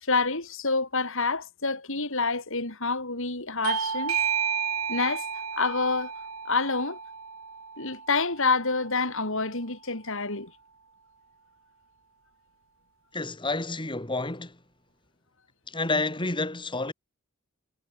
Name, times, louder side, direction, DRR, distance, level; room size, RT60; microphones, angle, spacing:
voice 1, 0.0-4.2 4.9-5.3 5.6-6.1 6.5-7.0 7.8-10.5, left 3 dB, 60° left, 5.5 m, -27 dB
Bell / Doorbell, 3.6-8.8, right 7 dB, 80° right, 4.4 m, -32 dB
voice 2, 13.1-14.6 15.7-16.9, left 2 dB, 20° left, 2.3 m, -29 dB
head